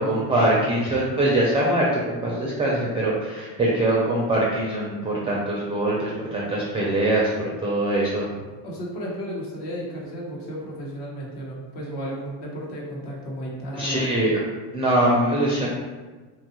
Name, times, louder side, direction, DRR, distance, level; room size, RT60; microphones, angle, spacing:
voice 1, 0.0-8.3 13.7-14.4 14.7-15.7, right 1 dB, 15° right, -4 dB, 0.3 m, -23 dB
voice 2, 8.6-14.1, equal, 60° left, -3 dB, 1.1 m, -33 dB
2.9 x 2.3 x 2.9 m, 1.3 s
supercardioid pair, 85°, 46 cm